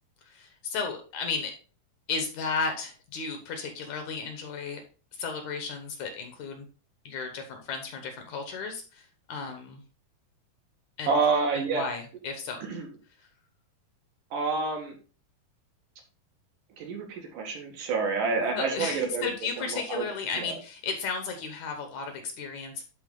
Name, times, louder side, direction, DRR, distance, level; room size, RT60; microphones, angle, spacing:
voice 1, 0.2-1.5 2.1-4.8 5.1-6.7 7.1-9.8 11.0-11.1 11.5-12.6 17.8-17.9 18.5-22.8, left 5 dB, 65° left, 5 dB, 2.2 m, -34 dB
voice 2, 11.1-11.8 12.7-12.9 14.3-15.0 16.8-19.3 19.7-20.1 20.4-20.6, right 4 dB, 70° right, 1 dB, 3.2 m, -28 dB
11.5 x 4.0 x 3.8 m, 0.36 s
omnidirectional pair, 4.0 m